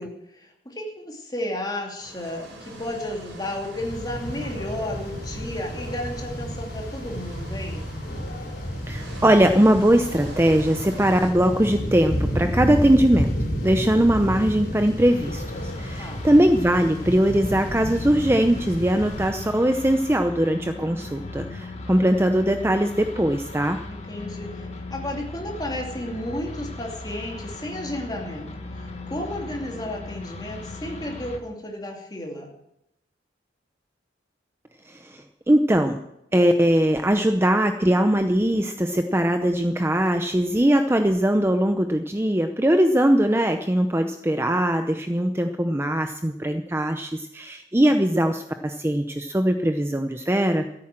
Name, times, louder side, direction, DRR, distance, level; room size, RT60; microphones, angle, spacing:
voice 1, 0.0-7.9 16.0-16.2 23.9-28.5 29.1-32.5, left 1 dB, 20° left, 0 dB, 2.6 m, -33 dB
sound 1, 2.0-11.3, right 1 dB, 75° right, 3.7 m, -42 dB
sound 2, 3.8-19.3, equal, 55° left, 4.2 m, -31 dB
voice 2, 8.9-13.3 13.6-23.8 35.1-35.2 35.5-36.0 36.3-50.7, right 1 dB, 15° right, 7 dB, 0.6 m, -21 dB
sound 3, 15.0-31.4, left 2 dB, 35° left, 1.7 m, -37 dB
14.0 x 8.8 x 7.6 m, 0.82 s
head